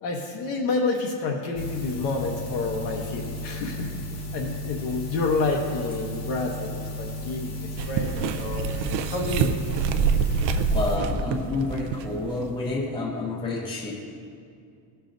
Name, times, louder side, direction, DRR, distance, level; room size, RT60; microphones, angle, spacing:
voice 1, 0.0-3.9 4.3-7.5 7.9-9.5, left 3 dB, 65° left, 1 dB, 0.9 m, -29 dB
sound 1, 1.6-11.0, left 1 dB, 30° left, 0.9 m, -34 dB
sound 2, 7.8-12.3 12.6-12.7, right 5 dB, 65° right, 0.6 m, -26 dB
voice 2, 10.7-13.9, left 2 dB, 10° left, -2 dB, 0.5 m, -29 dB
15.0 x 5.7 x 2.6 m, 2.4 s
cardioid pair, 155°, 48 cm